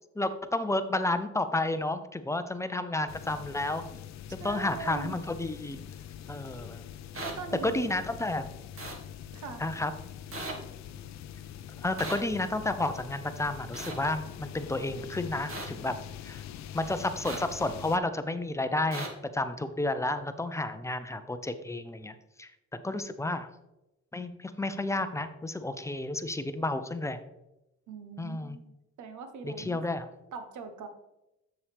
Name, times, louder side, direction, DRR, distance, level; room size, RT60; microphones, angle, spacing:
voice 1, 0.2-3.8 4.4-5.8 6.3-6.8 7.6-8.5 9.6-9.9 11.8-16.0 16.2-16.4 16.7-22.5 22.8-23.5 24.1-27.2 28.2-28.6 29.4-30.1, left 2 dB, 10° left, 10 dB, 0.6 m, -31 dB
sound 1, 3.1-18.0, left 10 dB, 65° left, 0.5 m, -44 dB
voice 2, 4.4-5.2 7.2-7.9 9.3-9.6 27.9-28.7 29.0-29.8 30.3-30.9, right 6 dB, 75° right, 8 dB, 1.0 m, -41 dB
sound 2, 7.1-7.3 8.8-9.0 10.3-10.5 12.0-12.2 13.7-13.9 15.5-15.7 17.2-17.4 18.9-19.1, right 2 dB, 45° right, 1.8 m, -37 dB
7.1 x 6.9 x 3.4 m, 0.94 s
cardioid pair, 90°, 30 cm